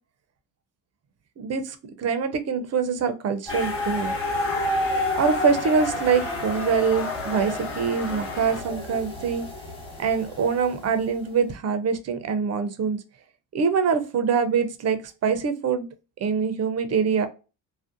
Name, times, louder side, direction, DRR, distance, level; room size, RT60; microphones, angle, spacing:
voice 1, 1.4-4.1 5.1-9.4 10.0-13.0 13.5-15.9 16.2-17.3, right 6 dB, 40° right, 9 dB, 0.5 m, -24 dB
sound 1, 3.5-8.6, left 3 dB, 35° left, 0.7 m, -36 dB
sound 2, 3.5-11.3, left 2 dB, 15° left, 1.1 m, -30 dB
2.6 x 2.1 x 2.4 m, 0.32 s
supercardioid pair, 75°, 40 cm